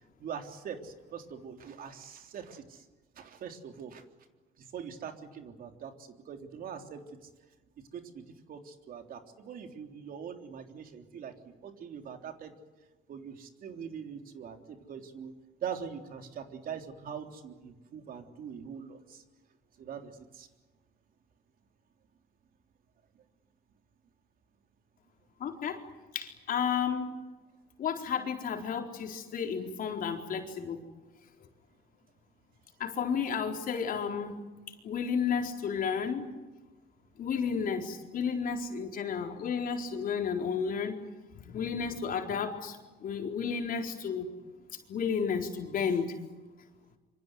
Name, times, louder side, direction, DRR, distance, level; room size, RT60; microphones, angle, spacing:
voice 1, 0.2-2.9 3.2-4.0 4.6-7.3 7.9-8.2 8.5-12.5 13.1-15.3 15.6-19.2 19.8-20.5, right 7 dB, 60° right, 5 dB, 3.5 m, -43 dB
voice 2, 25.4-25.8 26.1-27.2 27.8-30.8 32.8-34.3 34.8-36.3 37.2-41.0 41.4-42.8 43.0-44.3 44.9-46.1, left 6 dB, 55° left, 3 dB, 4.2 m, -32 dB
26.5 x 25.5 x 7.9 m, 1.2 s
cardioid pair, 110°, 17 cm